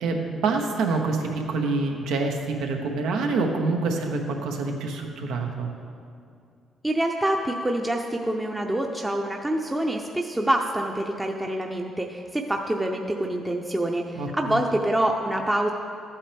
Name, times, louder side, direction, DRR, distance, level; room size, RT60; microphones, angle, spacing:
voice 1, 0.0-5.7 14.2-14.6, right 3 dB, 90° right, 3 dB, 1.0 m, -26 dB
voice 2, 6.8-15.7, right 1 dB, 15° right, 1 dB, 0.6 m, -26 dB
13.0 x 8.4 x 3.4 m, 2.4 s
cardioid pair, 90°, 0 cm